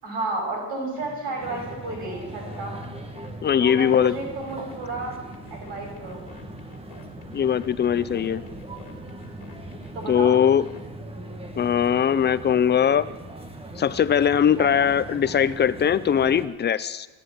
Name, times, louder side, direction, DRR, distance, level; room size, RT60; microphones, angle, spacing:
voice 1, 0.0-2.8 3.6-6.2 9.9-10.3 14.6-14.9, right 2 dB, 65° right, -1 dB, 6.9 m, -32 dB
sound 1, 1.0-10.9, left 4 dB, 65° left, 2.6 m, -47 dB
sound 2, 1.4-16.5, right 1 dB, 15° right, 1.2 m, -40 dB
voice 2, 3.4-4.1 7.3-8.4 10.1-10.7 11.6-13.1 13.8-17.1, left 8 dB, 25° left, 15 dB, 0.4 m, -20 dB
14.0 x 9.3 x 9.6 m, 1.1 s
cardioid pair, 155°, 44 cm